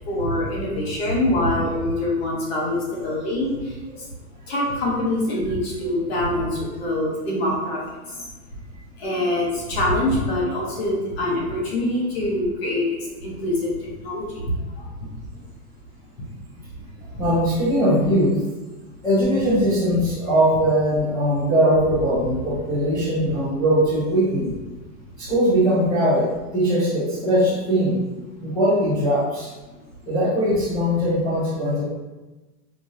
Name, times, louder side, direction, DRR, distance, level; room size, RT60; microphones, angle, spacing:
voice 1, 0.1-3.5 4.5-7.8 9.0-12.8 13.2-13.7 14.0-14.3 14.8-14.9 17.1-17.3, left 1 dB, 40° left, -4 dB, 0.9 m, -24 dB
voice 2, 17.2-18.4 19.0-24.5 25.2-26.2 26.5-28.0 28.4-29.5 30.1-31.8, equal, 5° left, -15 dB, 0.6 m, -20 dB
4.9 x 2.6 x 2.6 m, 1.1 s
supercardioid pair, 170°, 46 cm